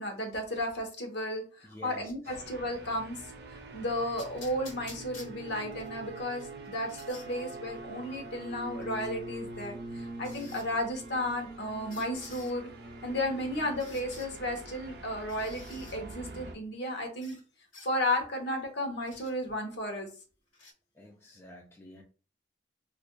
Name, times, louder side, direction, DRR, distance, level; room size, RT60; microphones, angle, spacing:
voice 1, 0.0-3.2 3.5-12.7 13.0-17.4 17.8-20.1, left 1 dB, 60° left, 3 dB, 0.9 m, -34 dB
voice 2, 1.6-2.3 21.0-22.0, left 1 dB, 15° left, -1 dB, 0.4 m, -49 dB
sound 1, 2.2-16.5, right 2 dB, 55° right, 0.5 m, -44 dB
sound 2, 4.2-5.9 6.4-7.3 8.8-8.9 10.2-10.7 11.9-12.5 13.8-14.3 15.3-16.0 17.2-17.4 17.7-17.9 19.1-19.3 20.5-20.7, left 3 dB, 85° left, 1.2 m, -50 dB
4.8 x 2.5 x 2.2 m, 0.37 s
head